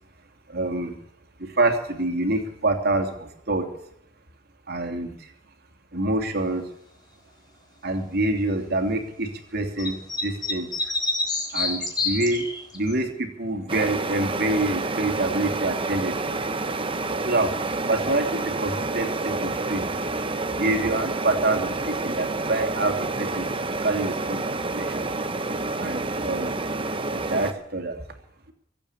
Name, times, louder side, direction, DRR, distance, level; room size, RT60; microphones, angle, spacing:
voice 1, 0.5-1.0 1.4-3.7 4.7-5.3 5.9-6.6 7.8-10.7 11.5-12.5 12.7-16.4 17.2-17.5 17.9-19.9 20.5-23.4 23.8-24.4 24.7-25.1 25.8-26.6 27.3-28.0, right 2 dB, 50° right, 5 dB, 3.0 m, -26 dB
sound 1, 9.8-12.9, left 3 dB, 20° left, 3.9 m, -27 dB
sound 2, 13.7-27.5, right 3 dB, 25° right, 1.1 m, -28 dB
24.0 x 8.9 x 6.7 m, 0.75 s
head